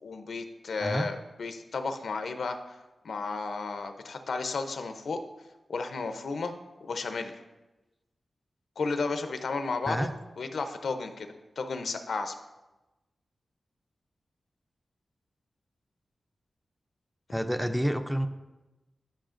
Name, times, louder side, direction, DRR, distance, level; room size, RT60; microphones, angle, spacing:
voice 1, 0.0-2.8 3.0-5.2 5.7-6.5 6.8-7.4 8.8-11.3 11.6-12.3, left 4 dB, 80° left, 7 dB, 0.6 m, -33 dB
voice 2, 0.8-1.1 9.9-10.1 17.3-18.3, equal, ahead, 7 dB, 0.4 m, -28 dB
11.5 x 5.5 x 2.5 m, 1.1 s
wide cardioid pair, 145°, 0 cm